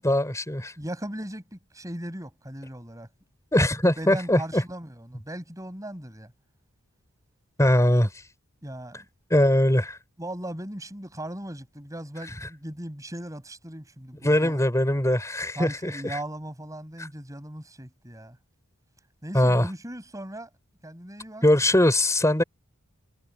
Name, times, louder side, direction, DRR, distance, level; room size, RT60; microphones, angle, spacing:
voice 1, 0.0-0.7 3.5-4.6 7.6-8.1 9.3-10.0 14.2-16.2 19.3-19.7 21.4-22.4, left 1 dB, 15° left, 5.3 m, -21 dB
voice 2, 0.8-3.1 4.0-6.3 8.6-9.0 10.2-14.6 15.6-18.4 19.2-20.5 20.8-21.4, right 1 dB, 15° right, 6.2 m, -38 dB
head